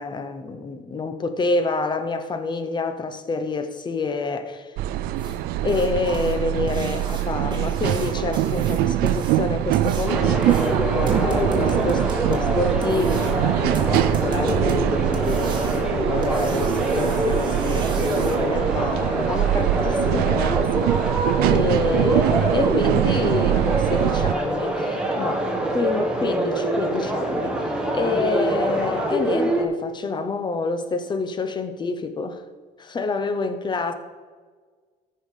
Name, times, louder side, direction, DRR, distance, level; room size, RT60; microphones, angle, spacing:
voice 1, 0.0-4.7 5.6-32.4 32.8-33.9, left 3 dB, 30° left, 1.0 m, -28 dB
sound 1, 4.8-24.3, right 13 dB, 80° right, 0.5 m, -23 dB
sound 2, 5.2-18.4 20.7-20.8 21.2-21.3 21.8-21.9 22.4-22.5 22.9-23.1 23.5-23.6 24.0-24.1, right 3 dB, 30° right, 2.1 m, -35 dB
sound 3, 10.1-29.7, right 1 dB, 5° right, 1.6 m, -25 dB
14.0 x 5.6 x 5.1 m
cardioid pair, 120°, 16 cm